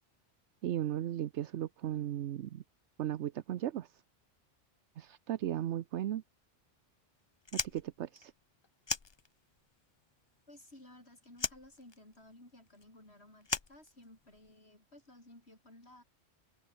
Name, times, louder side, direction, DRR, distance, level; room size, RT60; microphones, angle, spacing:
voice 1, 0.6-2.6 3.0-4.0 5.0-6.2 7.5-8.3, right 11 dB, 75° right, 1.0 m, -36 dB
Fire, 7.4-9.7 10.0-11.0 11.3-14.5, left 4 dB, 30° left, 0.6 m, -39 dB
voice 2, 10.5-16.0, left 1 dB, 60° left, 7.6 m, -57 dB
omnidirectional pair, 1.2 m